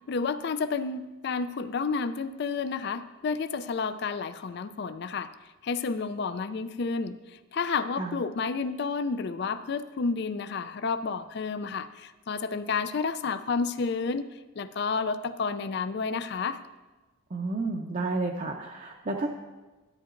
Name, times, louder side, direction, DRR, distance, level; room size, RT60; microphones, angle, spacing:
voice 1, 0.1-5.3 5.6-7.2 7.5-14.3 14.6-16.6, left 4 dB, 50° left, 12 dB, 0.4 m, -30 dB
voice 2, 17.3-19.3, right 3 dB, 35° right, -1 dB, 0.6 m, -31 dB
13.0 x 9.9 x 2.5 m, 1.2 s
head